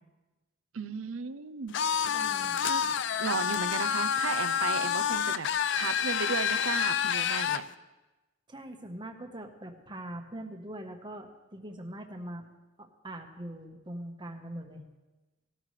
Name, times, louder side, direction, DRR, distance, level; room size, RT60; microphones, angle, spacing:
voice 1, 0.7-1.8 2.6-2.8 3.2-5.5 5.8-7.6, right 5 dB, 80° right, 13 dB, 0.6 m, -35 dB
sound 1, 1.7-7.6, left 8 dB, 60° left, 0.4 m, -28 dB
voice 2, 2.1-2.6 8.5-12.4 12.8-14.8, right 1 dB, 25° right, 4 dB, 1.2 m, -42 dB
18.0 x 13.5 x 3.3 m, 1.1 s
head